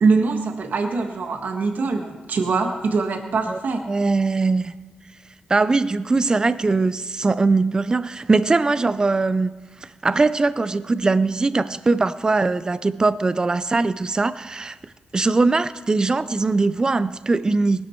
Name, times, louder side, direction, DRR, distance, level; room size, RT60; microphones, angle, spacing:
voice 1, 0.0-3.8, right 4 dB, 60° right, 1.5 m, -22 dB
voice 2, 3.9-4.8 5.5-9.5 9.8-14.8 15.1-17.9, right 3 dB, 20° right, 0.4 m, -21 dB
19.5 x 11.5 x 4.5 m
wide cardioid pair, 135°, 3 cm